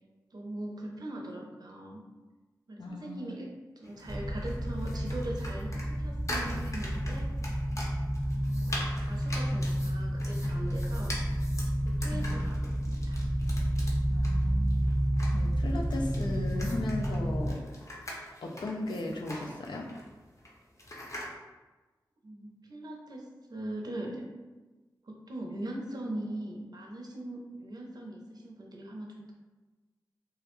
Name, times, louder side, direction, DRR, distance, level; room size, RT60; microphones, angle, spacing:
voice 1, 0.3-2.0 2.7-7.3 8.4-11.2 11.8-12.6 12.9-13.2 22.2-24.2 25.0-29.3, right 1 dB, 60° right, 0 dB, 0.5 m, -41 dB
voice 2, 2.8-3.3 12.1-12.5 14.1-14.8 15.3-17.6 18.4-19.9, left 2 dB, 80° left, 1 dB, 0.4 m, -36 dB
sound 1, 3.8-21.3, left 1 dB, 40° left, 0.6 m, -43 dB
sound 2, 4.1-17.5, equal, 5° right, 0.4 m, -30 dB
2.3 x 2.0 x 2.9 m, 1.2 s
cardioid pair, 40°, 8 cm